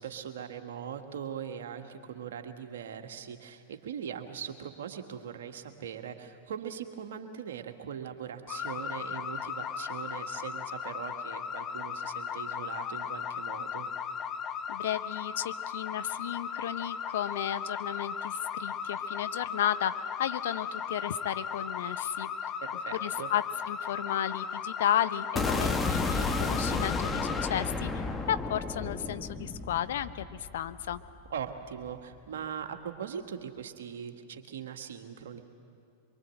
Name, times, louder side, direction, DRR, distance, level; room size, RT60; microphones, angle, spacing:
voice 1, 0.0-13.9 22.6-23.3 31.3-35.4, right 8 dB, 70° right, 5 dB, 1.7 m, -40 dB
sound 1, 8.5-27.5, left 7 dB, 30° left, 0.9 m, -36 dB
voice 2, 14.7-19.9 20.2-22.3 23.0-31.0, left 11 dB, 65° left, 12 dB, 0.8 m, -33 dB
sound 2, 25.4-31.4, left 3 dB, 15° left, 1.5 m, -32 dB
24.0 x 23.0 x 7.8 m, 2.5 s
figure-of-eight pair, 95°, 0 cm